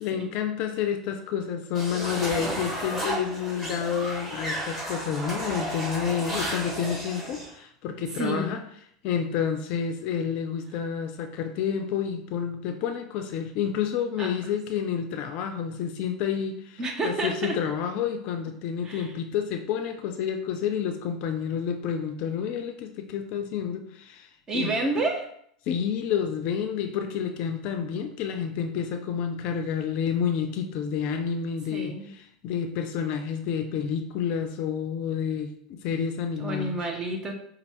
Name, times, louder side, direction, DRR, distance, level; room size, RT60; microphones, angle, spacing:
voice 1, 0.0-8.6 9.0-24.3 24.5-24.7 25.7-32.0 32.4-36.8, left 7 dB, 50° left, 7 dB, 0.4 m, -29 dB
sound 1, 1.7-7.5, right 1 dB, 10° right, 1.5 m, -33 dB
voice 2, 8.1-8.5 14.2-14.3 16.8-17.6 18.8-19.1 24.5-25.3 31.7-32.1 36.4-37.3, right 2 dB, 25° right, 2 dB, 0.8 m, -29 dB
5.2 x 2.4 x 3.0 m, 0.68 s
figure-of-eight pair, 80°, 2 cm